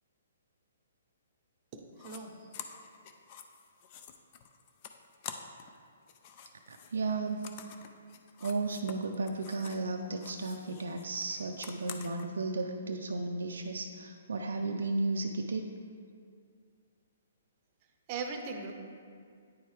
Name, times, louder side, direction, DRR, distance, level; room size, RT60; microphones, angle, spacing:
voice 1, 1.7-2.4 18.1-18.7, right 4 dB, 30° right, 4 dB, 0.7 m, -39 dB
sound 1, 2.0-2.2 2.5-5.8 6.0-9.9 10.2-12.3, left 7 dB, 35° left, 0.4 m, -48 dB
voice 2, 6.7-7.4 8.4-15.6, right 3 dB, 85° right, 3 dB, 0.4 m, -34 dB
9.3 x 4.5 x 3.3 m, 2.2 s
hypercardioid pair, 155°, 0 cm